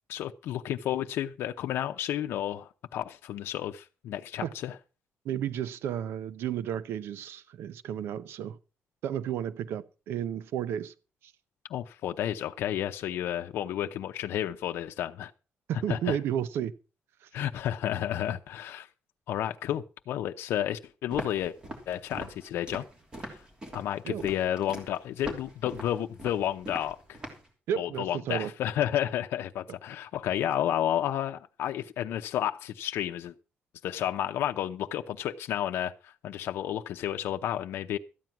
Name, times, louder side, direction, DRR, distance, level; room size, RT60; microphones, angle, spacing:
voice 1, 0.1-4.8 11.7-15.3 15.9-16.2 17.3-18.9 19.3-21.5 21.9-22.9 23.2-23.4 23.7-27.2 27.8-33.3 33.8-38.0, left 11 dB, 85° left, 0.7 m, -31 dB
voice 2, 5.2-8.6 9.0-10.9 11.2-11.3 15.7-16.7 17.2-17.3 24.0-24.2 27.7-28.5, right 10 dB, 90° right, 0.7 m, -32 dB
Walk footsteps, 21.1-27.5, right 1 dB, 20° right, 3.1 m, -42 dB
13.5 x 9.3 x 5.9 m
cardioid pair, 175°, 4 cm